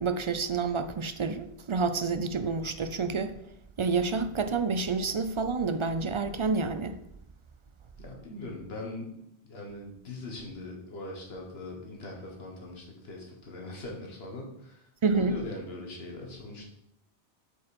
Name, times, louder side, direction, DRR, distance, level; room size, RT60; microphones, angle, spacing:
voice 1, 0.0-3.4 3.8-6.9 15.0-15.4, right 4 dB, 45° right, 0.4 m, -28 dB
voice 2, 8.0-9.1 9.4-14.9 15.1-16.6, left 2 dB, 70° left, 1.8 m, -41 dB
7.9 x 5.2 x 4.3 m
omnidirectional pair, 1.1 m